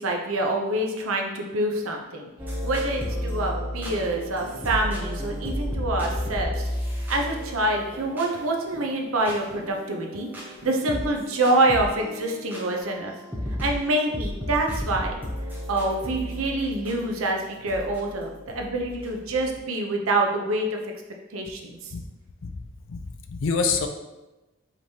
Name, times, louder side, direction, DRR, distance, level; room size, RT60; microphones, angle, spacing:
voice 1, 0.0-2.3 2.6-6.7 7.1-13.1 13.6-15.2 15.7-20.8 21.3-21.8, right 2 dB, 80° right, 2 dB, 0.7 m, -26 dB
sound 1, 2.4-19.6, equal, 10° right, 0.6 m, -33 dB
voice 2, 22.9-23.9, left 5 dB, 65° left, 6 dB, 0.4 m, -26 dB
5.0 x 3.1 x 2.8 m, 1.0 s
head